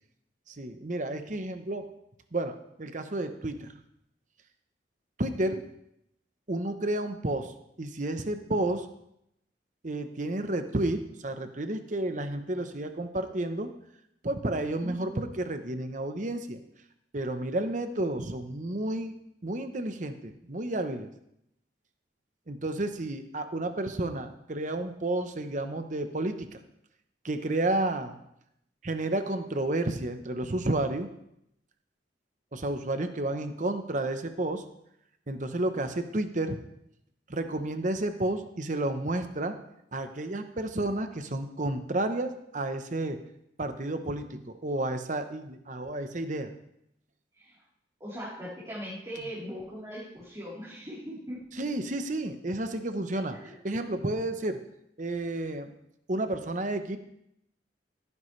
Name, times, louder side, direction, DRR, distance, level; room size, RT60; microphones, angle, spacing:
voice 1, 0.5-1.9 2.3-3.7 5.2-5.6 6.5-7.5 7.8-8.9 9.8-13.7 14.2-16.6 17.1-21.1 22.5-26.5 27.2-28.2 28.8-31.1 32.5-34.6 35.3-36.6 37.3-39.6 39.9-43.2 43.6-46.5 51.6-53.4 53.6-54.6 55.0-55.7 56.1-57.0, right 1 dB, 45° right, 8 dB, 0.9 m, -31 dB
voice 2, 14.8-15.2 47.3-47.5 48.0-51.4 53.3-53.5, equal, 20° right, -9 dB, 3.7 m, -40 dB
16.0 x 9.9 x 3.3 m, 0.79 s
head